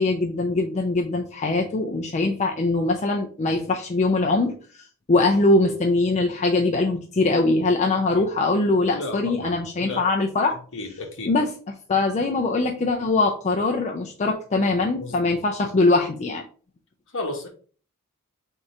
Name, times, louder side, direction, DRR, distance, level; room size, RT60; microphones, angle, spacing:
voice 1, 0.0-10.6 11.3-16.4, left 2 dB, 30° left, 2 dB, 0.4 m, -22 dB
voice 2, 8.9-10.1 10.7-11.3 15.0-15.4 17.1-17.5, left 2 dB, 60° left, 2 dB, 1.1 m, -33 dB
3.7 x 2.7 x 4.2 m, 0.41 s
head